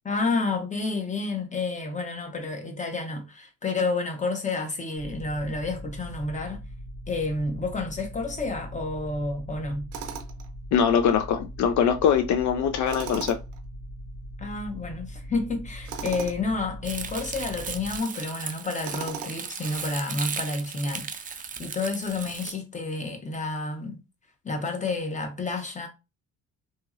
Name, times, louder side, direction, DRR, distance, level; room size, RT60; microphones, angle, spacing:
voice 1, 0.0-6.6 7.1-9.9 14.4-24.0 24.4-25.9, left 3 dB, 25° left, 1.0 m, -30 dB
sound 1, 5.0-18.0, equal, 85° left, 1.3 m, -40 dB
Tools, 9.9-10.5 12.9-13.6 15.8-16.4 18.8-19.5, right 7 dB, 90° right, 0.6 m, -37 dB
voice 2, 10.7-13.4, left 8 dB, 70° left, 0.4 m, -22 dB
Crumpling crinkling, 16.8-22.5, right 6 dB, 30° right, 0.4 m, -36 dB
2.9 x 2.8 x 2.4 m
cardioid pair, 90°, 30 cm